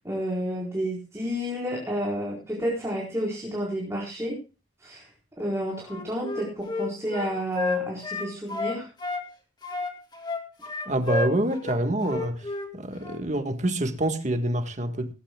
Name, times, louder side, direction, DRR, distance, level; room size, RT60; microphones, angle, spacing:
voice 1, 0.0-4.4 4.8-5.1 5.4-8.9, equal, 15° right, 4.5 m, -30 dB
Wind instrument woodwind instrument, 5.8-9.3 9.6-12.7 13.0-13.2, left 3 dB, 25° left, 2.5 m, -31 dB
voice 2, 10.9-15.1, right 1 dB, 40° right, 1.7 m, -27 dB
18.5 x 15.5 x 2.3 m
head